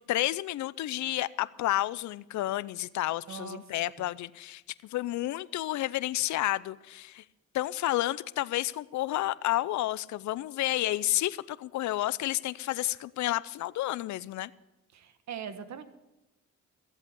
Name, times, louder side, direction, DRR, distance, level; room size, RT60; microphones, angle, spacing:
voice 1, 0.1-7.2 7.5-14.5, left 15 dB, 70° left, 0.6 m, -31 dB
voice 2, 3.3-3.6 4.0-4.1 14.9-15.8, right 7 dB, 65° right, 1.5 m, -41 dB
14.5 x 8.1 x 8.5 m
cardioid pair, 90°, 30 cm